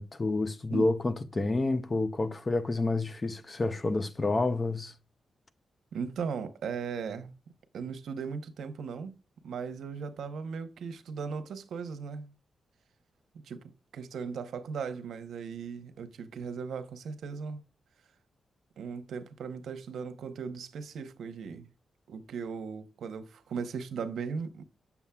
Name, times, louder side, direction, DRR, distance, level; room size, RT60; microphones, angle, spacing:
voice 1, 0.0-4.9, left 2 dB, 25° left, 0.5 m, -29 dB
voice 2, 5.9-7.3 7.7-9.2 9.4-12.3 13.4-17.6 18.8-21.7 22.1-24.6, right 6 dB, 90° right, 0.8 m, -37 dB
7.0 x 7.0 x 2.3 m
wide cardioid pair, 150°, 0 cm